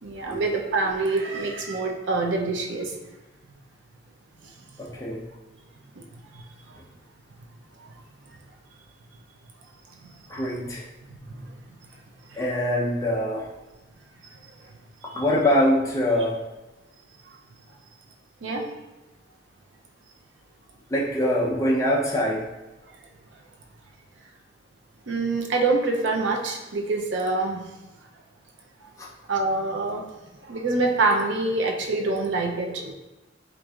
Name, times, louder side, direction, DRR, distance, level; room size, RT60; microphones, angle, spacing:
voice 1, 0.0-2.9 4.4-4.5 6.3-6.8 10.0-10.1 11.1-11.4 12.3-12.4 15.0-15.2 18.4-18.6 25.1-27.7 29.3-30.0 30.5-32.9, right 3 dB, 85° right, 1 dB, 0.5 m, -26 dB
voice 2, 4.8-5.2 10.3-10.8 12.4-13.5 15.1-16.4 20.9-22.4, left 1 dB, 15° left, -5 dB, 0.6 m, -23 dB
4.5 x 2.5 x 2.3 m, 1.1 s
head